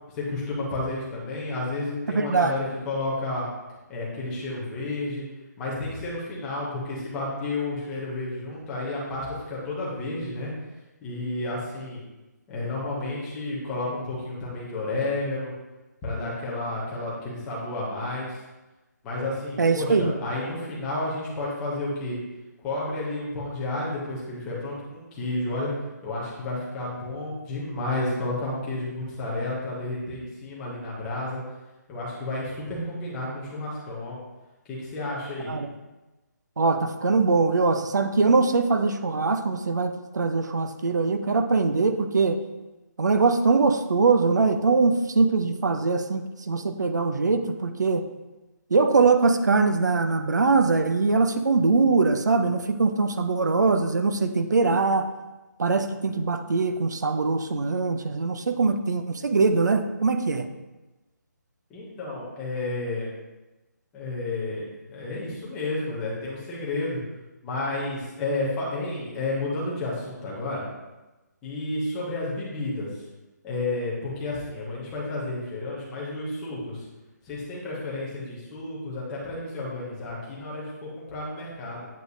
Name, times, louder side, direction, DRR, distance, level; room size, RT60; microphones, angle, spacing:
voice 1, 0.1-3.5 3.9-5.3 5.6-10.5 11.0-12.0 12.5-15.5 16.0-18.4 19.0-22.2 22.6-25.7 26.0-31.4 31.9-34.2 34.7-35.6 61.7-63.1 63.9-67.0 67.4-70.6 71.4-72.9 73.4-76.9 77.2-81.9, left 2 dB, 5° left, -6 dB, 0.5 m, -31 dB
voice 2, 2.1-2.5 19.6-20.2 35.5-35.7 36.6-42.4 43.0-48.1 48.7-55.1 55.6-60.5, right 4 dB, 75° right, 8 dB, 0.6 m, -22 dB
7.8 x 5.0 x 2.6 m, 1.1 s
hypercardioid pair, 180°, 10 cm